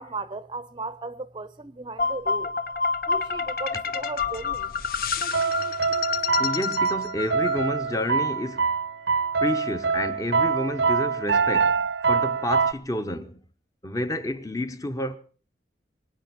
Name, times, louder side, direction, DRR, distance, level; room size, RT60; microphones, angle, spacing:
voice 1, 0.0-2.5 3.1-4.7, right 3 dB, 25° right, 0.7 m, -36 dB
sound 1, 2.0-8.1, left 5 dB, 55° left, 1.1 m, -28 dB
sound 2, 3.9-7.7 8.0-11.0, equal, 40° left, 3.6 m, -57 dB
sound 3, 5.3-12.7, right 5 dB, 85° right, 0.7 m, -25 dB
voice 2, 6.4-8.7 9.4-13.4 13.8-15.2, left 1 dB, 20° left, 1.0 m, -30 dB
24.0 x 9.5 x 6.0 m
head